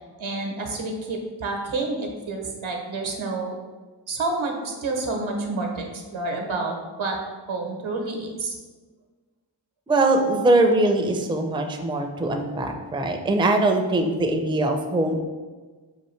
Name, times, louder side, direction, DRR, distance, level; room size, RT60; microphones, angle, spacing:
voice 1, 0.2-3.5 4.1-7.2 7.5-8.5, right 3 dB, 80° right, 2 dB, 0.8 m, -29 dB
voice 2, 9.9-15.2, right 2 dB, 10° right, 4 dB, 0.4 m, -22 dB
5.6 x 2.6 x 3.1 m, 1.4 s
cardioid pair, 45°, 47 cm